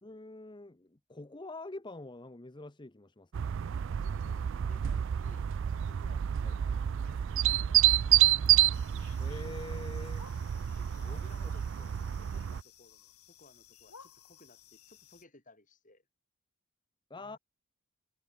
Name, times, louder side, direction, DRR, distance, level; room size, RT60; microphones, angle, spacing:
voice 1, 0.0-3.5 6.4-6.5 9.2-10.2 11.0-11.2 17.1-17.4, left 2 dB, 20° left, 0.8 m, -45 dB
sound 1, 3.3-12.6, right 11 dB, 55° right, 0.3 m, -29 dB
voice 2, 4.0-5.5 5.7-8.1 10.7-16.0 17.1-17.4, left 2 dB, 35° left, 7.7 m, -60 dB
sound 2, 8.7-15.2, left 8 dB, 90° left, 6.2 m, -58 dB
head